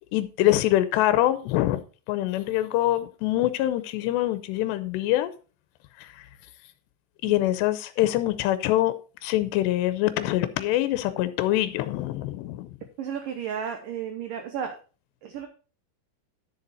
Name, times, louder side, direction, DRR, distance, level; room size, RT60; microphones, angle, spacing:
voice 1, 0.1-1.8 2.1-5.3 6.0-6.2 7.2-8.9 9.2-12.7, left 14 dB, 90° left, 2.8 m, -24 dB
voice 2, 13.0-14.8 15.2-15.5, right 8 dB, 75° right, 2.1 m, -33 dB
10.0 x 6.7 x 4.2 m
omnidirectional pair, 4.9 m